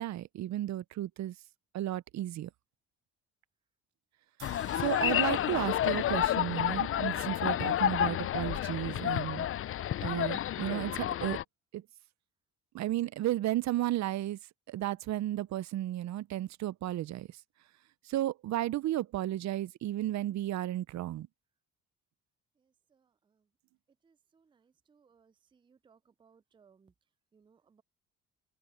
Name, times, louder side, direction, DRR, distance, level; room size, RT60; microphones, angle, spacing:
voice 1, 0.0-1.3 1.7-2.5 4.7-9.5 10.0-11.4 11.7-11.8 12.7-14.4 14.7-17.4 18.0-21.3, right 14 dB, 65° right, 0.6 m, -33 dB
sound 1, 4.4-11.4, left 11 dB, 45° left, 0.5 m, -30 dB
sound 2, 4.4-7.6, right 13 dB, 90° right, 3.2 m, -57 dB
voice 2, 24.9-25.3 25.7-26.9 27.3-27.8, right 6 dB, 15° right, 0.4 m, -64 dB
cardioid pair, 90°, 30 cm